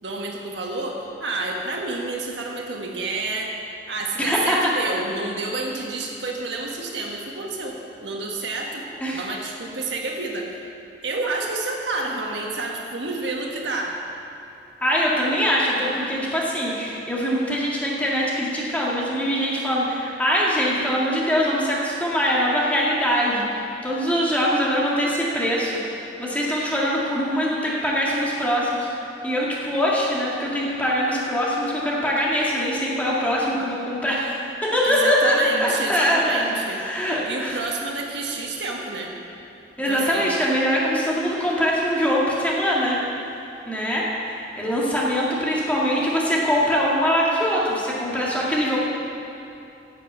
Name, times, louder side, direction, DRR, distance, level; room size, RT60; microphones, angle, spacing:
voice 1, 0.0-3.5 3.9-10.6 11.0-14.0 34.8-36.8 37.2-39.1 39.9-40.3, right 3 dB, 85° right, 0 dB, 1.6 m, -29 dB
voice 2, 4.2-4.7 9.0-9.2 14.8-28.9 29.2-37.6 39.8-43.0 43.7-48.9, equal, 10° left, -5 dB, 2.0 m, -23 dB
10.5 x 7.3 x 7.9 m, 2.7 s
head